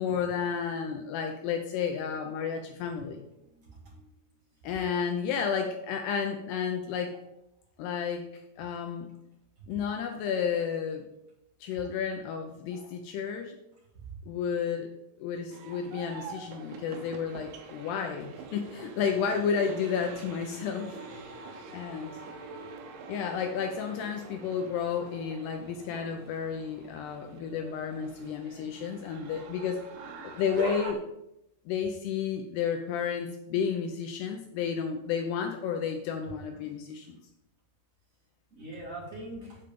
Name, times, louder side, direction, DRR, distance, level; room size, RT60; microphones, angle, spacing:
voice 1, 0.0-3.2 4.6-7.2 7.8-9.1 9.7-11.1 11.6-13.6 14.3-14.9 15.2-21.3 21.7-22.2 23.1-29.8 30.2-31.0 31.7-37.2, left 7 dB, 80° left, 4 dB, 2.5 m, -32 dB
voice 2, 3.5-4.0 12.7-12.9 38.5-39.6, right 1 dB, 45° right, -4 dB, 1.0 m, -43 dB
sound 1, 15.5-30.9, right 4 dB, 80° right, 3.3 m, -44 dB
7.8 x 5.6 x 6.8 m, 0.85 s
omnidirectional pair, 5.4 m